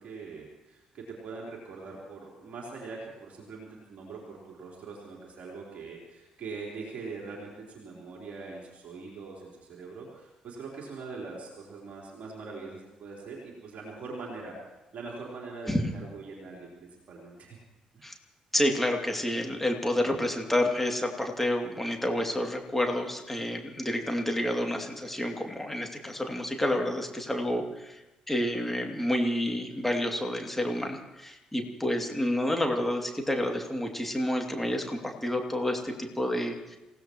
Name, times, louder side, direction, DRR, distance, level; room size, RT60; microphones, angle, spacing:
voice 1, 0.0-17.6 17.9-18.1, right 4 dB, 50° right, -2 dB, 3.8 m, -42 dB
voice 2, 18.5-36.8, left 1 dB, 5° left, 2 dB, 2.7 m, -29 dB
27.5 x 16.5 x 3.1 m, 0.99 s
figure-of-eight pair, 45°, 3 cm